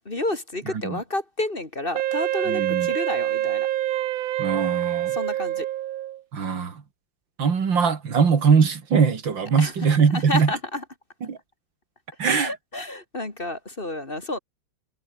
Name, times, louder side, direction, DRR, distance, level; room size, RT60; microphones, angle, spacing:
voice 1, 0.0-3.7 5.1-5.7 9.6-9.7 10.1-10.8 12.2-14.4, left 2 dB, 25° left, 2.7 m, -30 dB
Wind instrument woodwind instrument, 1.9-6.2, right 13 dB, 90° right, 1.6 m, -26 dB
voice 2, 2.5-2.9 4.4-5.1 6.3-6.7 7.4-10.5 11.3-11.4 12.2-12.5, right 6 dB, 75° right, 3.0 m, -21 dB
omnidirectional pair, 2.1 m